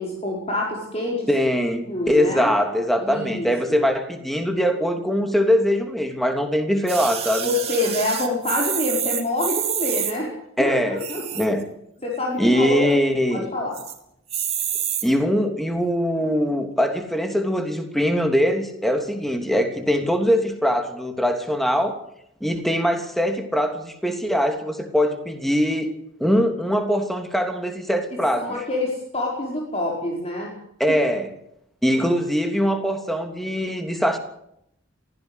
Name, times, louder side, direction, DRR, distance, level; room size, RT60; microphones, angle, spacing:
voice 1, 0.0-1.2 1.9-2.5 3.0-3.8 7.4-10.3 10.6-11.4 12.0-12.9 13.3-13.8 28.4-30.5 30.9-31.0 32.1-32.2, left 2 dB, 35° left, -2 dB, 5.3 m, -26 dB
voice 2, 1.3-7.5 10.6-11.0 11.3-11.6 12.4-13.5 15.0-22.0 22.4-25.9 26.2-28.5 30.8-31.3 31.8-34.2, equal, ahead, 6 dB, 3.1 m, -22 dB
sound 1, 6.9-10.1 10.9-11.6 12.1-12.2 12.3-12.4 12.8-13.2 13.7-14.0 14.3-15.0 15.8-15.9, right 9 dB, 35° right, 3.9 m, -27 dB
24.0 x 16.0 x 8.3 m, 0.76 s
head